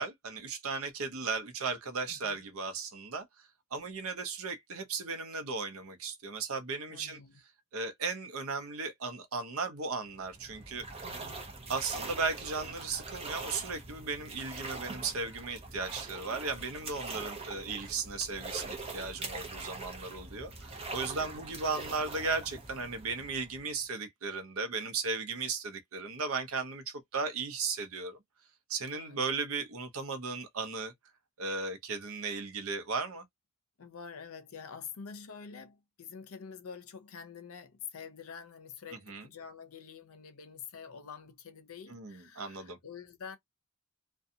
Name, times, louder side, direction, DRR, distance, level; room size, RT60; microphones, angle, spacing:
voice 1, 0.0-7.2 7.7-10.9 11.7-28.2 28.7-30.9 31.4-33.2 39.1-39.3 41.9-42.8, right 4 dB, 70° right, 0.7 m, -36 dB
voice 2, 2.1-2.4 6.9-7.4 11.0-11.5 17.1-17.4 21.2-21.5 28.9-29.2 33.8-43.4, left 6 dB, 70° left, 0.6 m, -47 dB
sound 1, 10.1-23.8, right 3 dB, 25° right, 0.7 m, -43 dB
2.5 x 2.2 x 2.6 m
head